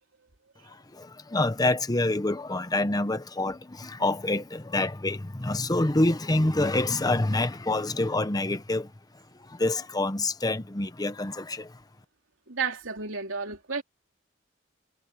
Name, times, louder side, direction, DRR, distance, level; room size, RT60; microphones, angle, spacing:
voice 1, 0.6-11.8, left 2 dB, 20° left, 0.9 m, -27 dB
voice 2, 12.5-13.8, right 5 dB, 75° right, 3.5 m, -32 dB
head